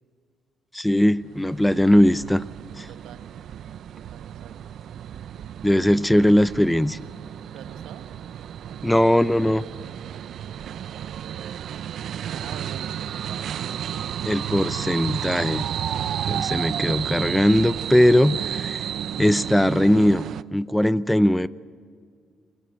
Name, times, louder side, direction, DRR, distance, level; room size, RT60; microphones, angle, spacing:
voice 1, 0.7-2.4 2.8-2.9 5.6-7.0 8.8-9.6 14.3-15.6 16.3-18.9 19.2-20.3 20.5-21.5, left 1 dB, 5° left, 17 dB, 0.6 m, -19 dB
sound 1, 1.2-20.4, right 10 dB, 70° right, 0.6 m, -32 dB
voice 2, 2.9-3.2 4.1-4.7 7.5-8.1 8.6-9.1 10.3-10.7 12.3-13.7, right 9 dB, 85° right, 8 dB, 1.6 m, -45 dB
29.0 x 20.5 x 8.1 m, 2.1 s
cardioid pair, 90°, 0 cm